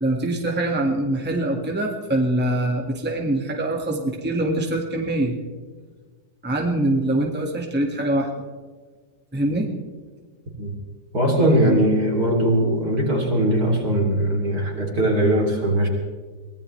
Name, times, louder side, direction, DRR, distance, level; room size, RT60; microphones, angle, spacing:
voice 1, 0.0-5.4 6.4-8.3 9.3-9.7, right 1 dB, 5° right, 0 dB, 1.7 m, -23 dB
voice 2, 11.1-15.9, right 1 dB, 55° right, 0 dB, 3.6 m, -20 dB
23.0 x 18.5 x 3.3 m, 1.5 s
omnidirectional pair, 2.0 m